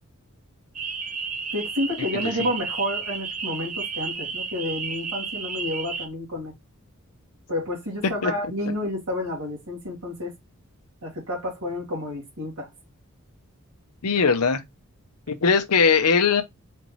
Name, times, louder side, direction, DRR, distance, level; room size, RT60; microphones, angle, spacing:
sound 1, 0.7-6.1, right 5 dB, 35° right, 0.7 m, -32 dB
voice 1, 1.5-6.5 7.5-10.3 11.0-12.7, left 1 dB, 75° right, 2.2 m, -30 dB
voice 2, 14.0-14.6 15.3-16.4, left 5 dB, 85° left, 0.7 m, -20 dB
4.4 x 3.9 x 3.0 m
head